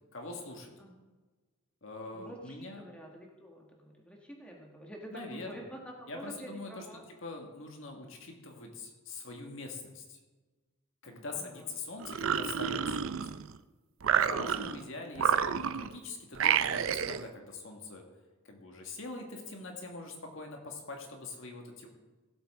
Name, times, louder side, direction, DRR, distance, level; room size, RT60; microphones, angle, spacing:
voice 1, 0.1-0.7 1.8-2.9 5.1-5.6 6.1-6.8 7.2-10.2 11.0-13.1 14.1-18.0 18.5-21.9, left 3 dB, 65° left, 2 dB, 1.8 m, -43 dB
voice 2, 2.1-7.1 11.3-11.7 14.4-14.7, right 1 dB, 5° left, 0 dB, 1.5 m, -48 dB
sound 1, 12.0-13.6 14.0-14.8 15.2-16.0 16.4-17.3, right 8 dB, 65° right, 0.4 m, -29 dB
17.0 x 8.0 x 3.7 m, 1.3 s
head